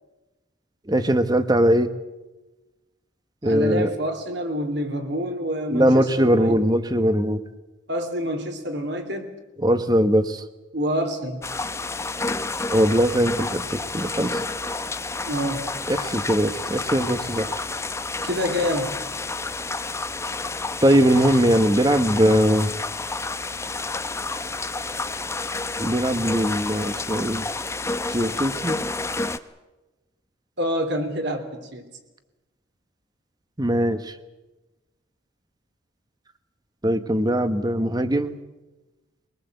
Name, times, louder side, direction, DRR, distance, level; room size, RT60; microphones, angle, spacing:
voice 1, 0.9-1.9 3.4-3.9 5.7-7.4 9.6-10.4 12.7-14.4 15.9-17.6 20.8-22.7 25.8-27.5 28.1-28.8 33.6-34.1 36.8-38.4, equal, 20° right, 10 dB, 1.1 m, -20 dB
voice 2, 3.4-6.6 7.9-9.3 10.7-11.4 15.2-15.6 18.2-19.0 30.6-31.8, equal, 60° right, 6 dB, 3.2 m, -27 dB
sound 1, 11.4-29.4, left 3 dB, 15° left, 0.7 m, -30 dB
23.5 x 19.0 x 8.0 m, 1.1 s
head